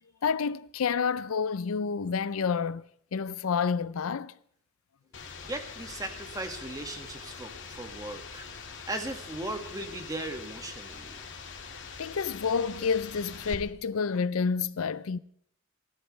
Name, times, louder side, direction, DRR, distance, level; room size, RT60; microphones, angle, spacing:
voice 1, 0.2-2.8 3.1-4.3 12.0-15.2, left 5 dB, 80° left, 0.5 m, -29 dB
sound 1, 5.1-13.6, left 5 dB, 60° left, 2.1 m, -43 dB
voice 2, 5.4-8.5 8.9-11.3, right 1 dB, 15° right, 1.8 m, -38 dB
29.0 x 11.5 x 3.3 m
head